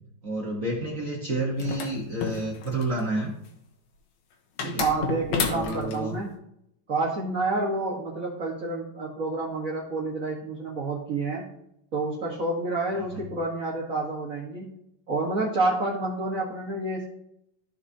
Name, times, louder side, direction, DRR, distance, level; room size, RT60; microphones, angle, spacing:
voice 1, 0.2-3.3 4.6-4.8 5.4-6.1 12.9-13.1, right 1 dB, 70° right, -2 dB, 0.7 m, -30 dB
sound 1, 1.6-3.0 4.6-6.0, left 6 dB, 80° left, 2.4 m, -31 dB
voice 2, 4.6-6.4 6.9-11.5 11.9-14.7 15.1-17.1, right 2 dB, 45° right, -3 dB, 1.1 m, -29 dB
14.0 x 5.8 x 2.8 m, 0.77 s
omnidirectional pair, 3.4 m